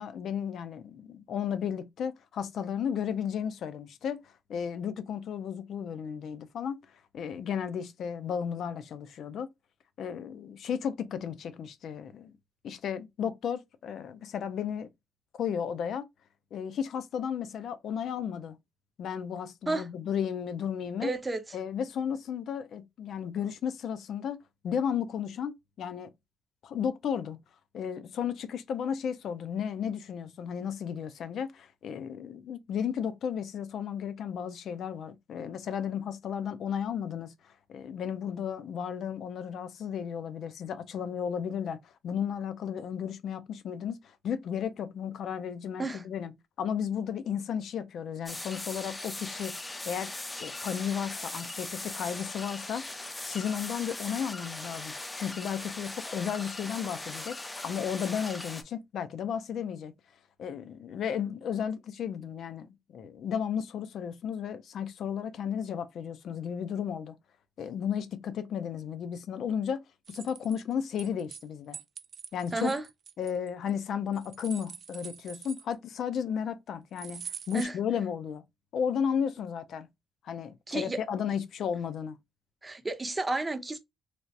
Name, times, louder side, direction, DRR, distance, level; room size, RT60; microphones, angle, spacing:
voice 1, 0.0-6.8 7.1-9.5 10.0-12.4 12.6-14.9 15.3-16.1 16.5-18.6 19.0-21.1 21.5-24.4 24.6-26.1 26.6-27.4 27.7-50.1 50.4-52.8 53.2-57.4 57.6-59.9 60.4-67.2 67.6-69.8 70.1-71.8 72.3-72.7 73.2-78.4 78.7-79.9 80.2-82.2, left 8 dB, 70° left, 0.5 m, -34 dB
voice 2, 21.0-21.4 45.8-46.0 72.5-72.8 77.5-77.7 80.7-81.0 82.6-83.8, right 2 dB, 20° right, 0.7 m, -31 dB
sound 1, 48.3-58.6, left 2 dB, 15° left, 0.5 m, -40 dB
sound 2, 70.0-71.4 71.7-73.7 74.1-76.0 77.0-77.6, right 7 dB, 55° right, 0.3 m, -44 dB
3.3 x 2.4 x 2.6 m
cardioid pair, 90°, 0 cm